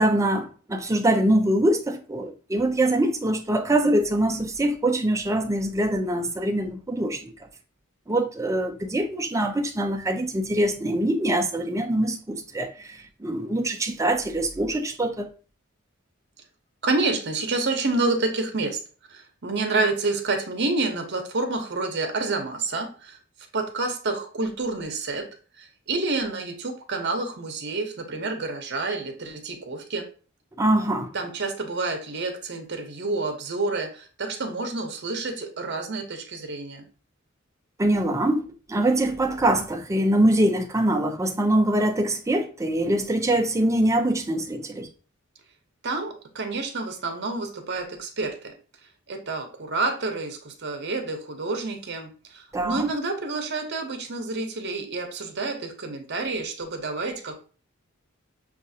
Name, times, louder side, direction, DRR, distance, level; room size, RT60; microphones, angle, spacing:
voice 1, 0.0-7.3 8.1-15.3 30.6-31.1 37.8-44.9 52.5-52.9, right 1 dB, 15° right, 0.5 m, -23 dB
voice 2, 16.8-18.8 19.1-23.2 23.5-25.3 25.5-30.1 31.1-36.8 45.8-48.5 49.1-57.4, right 3 dB, 55° right, 0.9 m, -28 dB
6.8 x 2.4 x 2.7 m
head